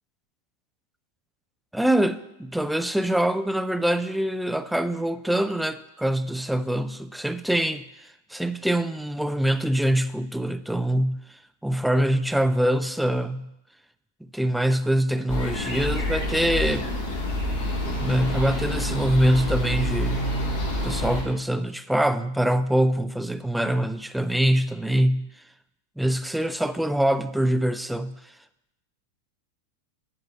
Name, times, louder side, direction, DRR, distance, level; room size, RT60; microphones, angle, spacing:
voice 1, 1.7-13.5 14.3-16.9 18.0-20.3 20.8-25.3 26.0-28.3, right 1 dB, ahead, 0.3 m, -24 dB
sound 1, 15.3-21.2, left 1 dB, 55° left, 2.7 m, -27 dB
9.4 x 3.9 x 7.3 m
figure-of-eight pair, 90°, 0 cm